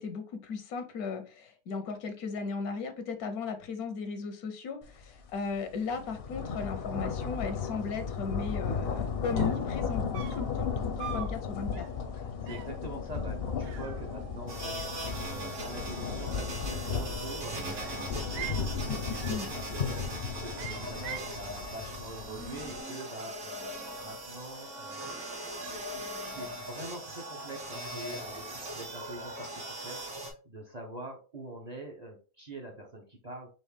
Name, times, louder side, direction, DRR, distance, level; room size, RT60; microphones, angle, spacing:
voice 1, 0.0-11.9 18.9-19.5, left 5 dB, 85° left, 8 dB, 1.3 m, -36 dB
sound 1, 5.0-5.2 5.5-22.8, left 6 dB, 55° left, 0.7 m, -35 dB
sound 2, 9.1-9.2 9.4-9.7 10.1-10.5 11.0-11.4 11.7-12.0 12.5-12.8 13.6-14.5 14.7-15.4 16.7-17.3 17.8-18.7 19.2-19.5 19.8-20.2 20.6-21.4, right 10 dB, 75° right, 1.0 m, -44 dB
voice 2, 12.1-19.4 19.6-20.0 20.4-25.2 25.6-30.0 30.4-33.5, right 2 dB, 35° right, 3 dB, 0.7 m, -44 dB
sound 3, 14.5-30.3, right 1 dB, 60° right, 1.5 m, -40 dB
4.2 x 3.1 x 3.3 m, 0.36 s
omnidirectional pair, 1.5 m